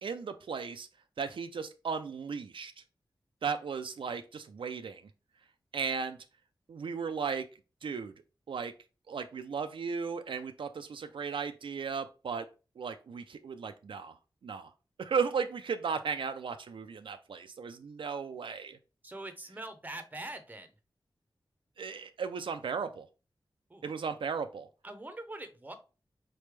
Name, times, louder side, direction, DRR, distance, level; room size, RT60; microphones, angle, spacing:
voice 1, 0.0-0.9 1.2-2.8 3.4-5.0 5.7-6.2 6.7-7.5 7.8-8.1 8.5-8.7 9.1-12.5 12.8-14.2 14.4-14.7 15.0-18.8 21.8-23.1 23.8-24.7, right 5 dB, 75° right, 8 dB, 0.4 m, -35 dB
voice 2, 19.0-20.7 23.7-23.8 24.8-25.7, right 2 dB, 20° right, 8 dB, 0.7 m, -43 dB
4.1 x 3.3 x 3.2 m, 0.31 s
wide cardioid pair, 90°, 9 cm